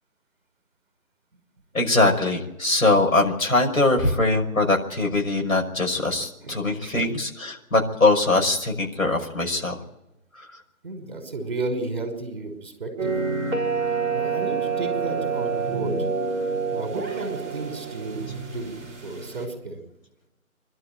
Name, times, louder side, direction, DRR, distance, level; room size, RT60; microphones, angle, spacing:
voice 1, 1.7-9.8 10.4-10.5, left 2 dB, 70° left, 1 dB, 5.8 m, -22 dB
voice 2, 6.4-7.0 10.8-13.1 14.1-16.0 16.7-19.8, right 3 dB, 35° right, 4 dB, 5.6 m, -33 dB
sound 1, 13.0-19.4, right 5 dB, 10° right, 4.5 m, -28 dB
25.0 x 12.5 x 9.1 m, 0.94 s
figure-of-eight pair, 175°, 43 cm